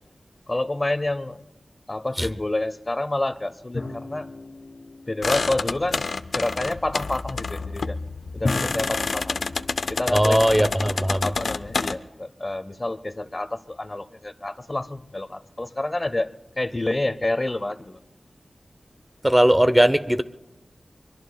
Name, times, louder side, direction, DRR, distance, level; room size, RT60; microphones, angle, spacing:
voice 1, 0.5-1.4 1.9-4.3 5.1-6.1 6.3-8.0 8.3-9.4 9.9-10.4 11.2-18.0, left 2 dB, 30° left, 0.7 m, -28 dB
sound 1, 3.7-6.1 8.4-11.3, left 2 dB, 55° left, 1.7 m, -35 dB
sound 2, 5.2-11.9, left 4 dB, 90° left, 0.6 m, -28 dB
voice 2, 10.1-11.2 19.2-20.2, equal, 10° right, 0.6 m, -18 dB
25.5 x 22.5 x 2.3 m
wide cardioid pair, 65°, 0 cm